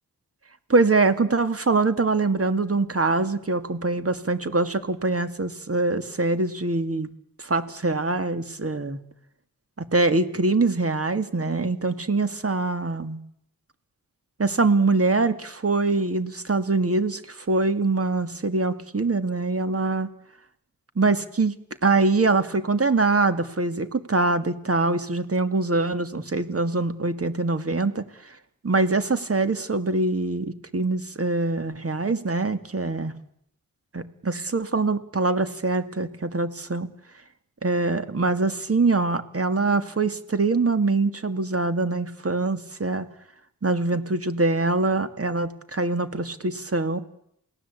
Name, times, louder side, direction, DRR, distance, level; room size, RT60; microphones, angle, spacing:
voice 1, 0.7-7.1 7.4-9.0 9.8-13.2 14.4-20.1 21.0-21.5 21.8-28.0 28.6-33.1 33.9-36.9 37.6-43.1 43.6-47.0, right 3 dB, 40° right, 11 dB, 2.3 m, -24 dB
28.0 x 18.5 x 8.4 m, 0.74 s
cardioid pair, 60°, 35 cm